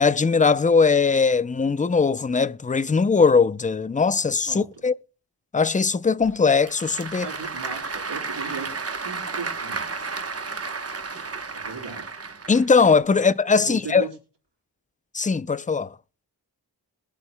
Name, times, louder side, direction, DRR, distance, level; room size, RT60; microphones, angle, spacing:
voice 1, 0.0-4.9 5.5-7.3 12.5-14.0 15.1-15.9, left 5 dB, 20° left, 0.4 m, -20 dB
Applause / Crowd, 6.2-13.0, right 4 dB, 35° right, 1.0 m, -33 dB
voice 2, 7.2-8.7 9.0-9.9 11.5-12.1 13.6-14.1, right 5 dB, 85° right, 3.8 m, -36 dB
21.5 x 8.1 x 2.2 m
wide cardioid pair, 60°, 41 cm